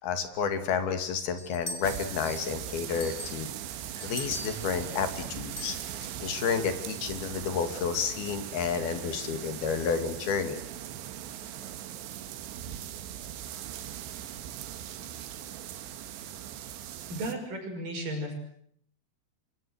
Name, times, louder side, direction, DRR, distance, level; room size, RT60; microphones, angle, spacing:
voice 1, 0.0-3.5 4.0-10.6, left 6 dB, 60° left, 8 dB, 4.2 m, -31 dB
sound 1, 1.4-2.5 2.9-4.9 5.6-5.8, left 1 dB, 15° left, 4.2 m, -41 dB
sound 2, 1.8-17.3, right 11 dB, 80° right, 3.7 m, -40 dB
voice 2, 17.1-18.3, right 1 dB, 50° right, 3 dB, 7.5 m, -34 dB
26.5 x 24.0 x 8.0 m, 0.67 s
omnidirectional pair, 5.1 m